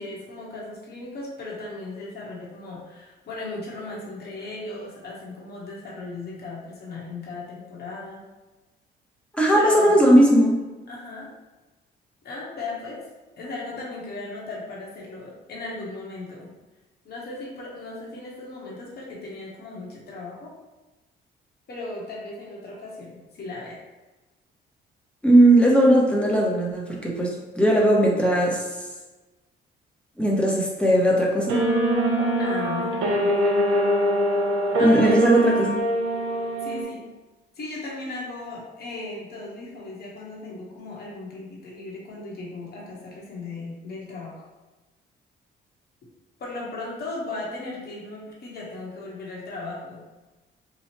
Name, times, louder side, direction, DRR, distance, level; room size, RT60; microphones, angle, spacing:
voice 1, 0.0-8.2 9.5-10.0 10.9-11.3 12.2-13.0 13.4-16.5 17.0-20.5 21.7-23.8 32.4-33.4 34.8-35.2 36.6-37.1 37.5-44.5 46.4-50.0, left 2 dB, 55° left, -4 dB, 1.1 m, -36 dB
voice 2, 9.3-10.6 25.2-28.6 30.2-31.6 34.8-35.8, right 1 dB, 5° left, -3 dB, 0.9 m, -18 dB
sound 1, 31.5-36.8, right 1 dB, 80° right, 0.7 m, -23 dB
3.0 x 2.3 x 4.3 m, 1.1 s
cardioid pair, 90°, 20 cm